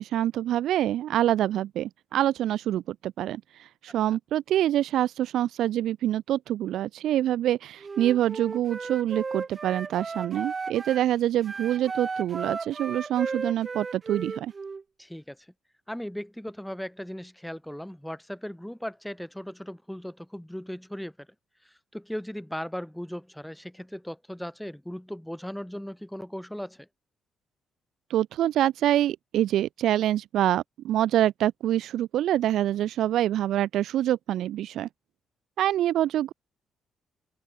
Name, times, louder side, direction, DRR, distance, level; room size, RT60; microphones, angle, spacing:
voice 1, 0.0-3.4 3.8-14.5 28.1-34.9 35.6-36.3, right 12 dB, 80° right, 0.4 m, -26 dB
Wind instrument woodwind instrument, 7.8-11.1 11.4-14.8, right 4 dB, 35° right, 1.9 m, -35 dB
voice 2, 15.0-15.4 15.9-21.1 21.6-26.9, equal, 5° left, 2.7 m, -37 dB
open air
cardioid pair, 90°, 0 cm